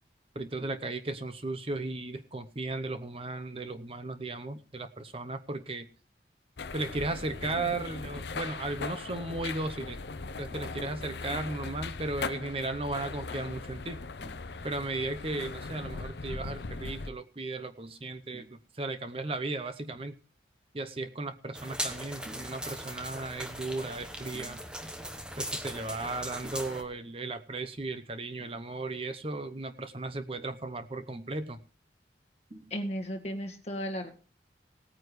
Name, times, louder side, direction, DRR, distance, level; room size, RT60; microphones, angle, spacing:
voice 1, 0.3-5.9 6.7-10.0 10.4-20.1 20.7-24.6 25.4-31.6 32.5-32.7, right 2 dB, 30° right, 9 dB, 0.7 m, -36 dB
sound 1, 6.6-17.1, left 3 dB, 70° left, 0.6 m, -39 dB
sound 2, 21.5-26.8, equal, 5° right, 1.1 m, -39 dB
voice 2, 32.7-34.1, equal, 35° left, 4 dB, 1.7 m, -34 dB
18.5 x 9.4 x 3.2 m, 0.37 s
head